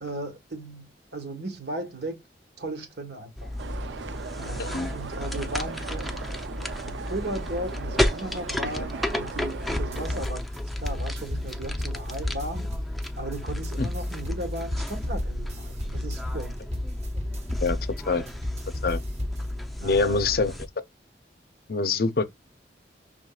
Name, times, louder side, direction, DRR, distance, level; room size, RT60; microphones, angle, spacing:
voice 1, 0.0-2.2 2.6-3.6 4.4-6.3 6.9-10.4 10.8-12.7 13.2-16.6 19.8-20.5, right 1 dB, 70° right, 1.5 m, -36 dB
sound 1, 3.4-20.7, left 1 dB, ahead, 0.5 m, -33 dB
sound 2, 3.6-10.2, right 5 dB, 90° right, 0.5 m, -39 dB
voice 2, 4.6-4.9 13.8-13.9 17.6-17.8 18.1-18.2 18.8-19.0 19.8-20.5 21.7-22.2, left 4 dB, 55° left, 0.5 m, -24 dB
sound 3, 9.7-19.5, left 1 dB, 40° right, 1.1 m, -33 dB
6.2 x 3.6 x 2.4 m
head